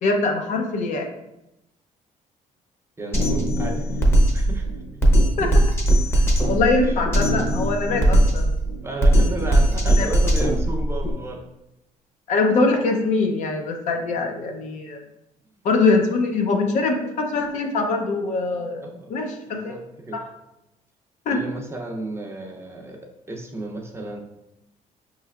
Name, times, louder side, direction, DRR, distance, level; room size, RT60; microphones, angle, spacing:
voice 1, 0.0-1.1 5.4-5.6 6.1-6.2 6.5-8.5 9.9-10.1 12.3-15.0 15.6-18.8 19.1-19.8 21.3-21.4, left 3 dB, 60° left, 3 dB, 0.6 m, -23 dB
voice 2, 3.0-4.1 4.3-4.8 6.8-7.0 8.8-11.5 18.8-19.1 19.5-20.2 21.3-24.2, right 2 dB, 20° right, 1 dB, 0.6 m, -33 dB
Drum kit, 3.1-11.1, right 1 dB, 15° left, 0.8 m, -19 dB
5.4 x 3.2 x 2.4 m, 0.89 s
cardioid pair, 125°, 14 cm